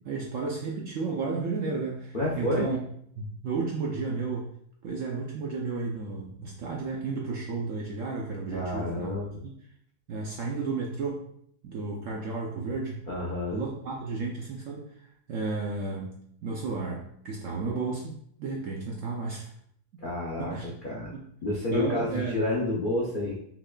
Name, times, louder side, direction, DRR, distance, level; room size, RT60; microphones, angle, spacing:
voice 1, 0.0-2.8 3.2-4.5 4.8-9.2 10.1-11.2 11.6-13.0 13.5-19.5 20.4-20.7 21.1-21.2 21.7-22.4, right 4 dB, 70° right, -1 dB, 0.7 m, -33 dB
voice 2, 2.1-2.7 8.5-9.4 13.1-13.6 20.0-21.1 21.4-23.4, left 1 dB, 70° left, -5 dB, 0.5 m, -29 dB
5.8 x 2.3 x 2.2 m, 0.67 s
omnidirectional pair, 1.8 m